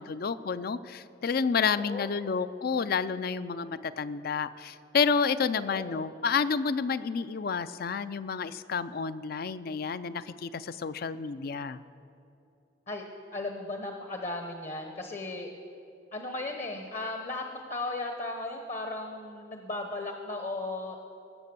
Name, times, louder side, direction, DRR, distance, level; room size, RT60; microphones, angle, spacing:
voice 1, 0.0-11.8, left 5 dB, 50° left, 14 dB, 0.4 m, -30 dB
voice 2, 5.6-6.0 12.9-13.0 13.3-15.5 16.1-21.0, left 2 dB, 35° left, 4 dB, 0.9 m, -36 dB
19.0 x 7.3 x 6.8 m, 2.7 s
head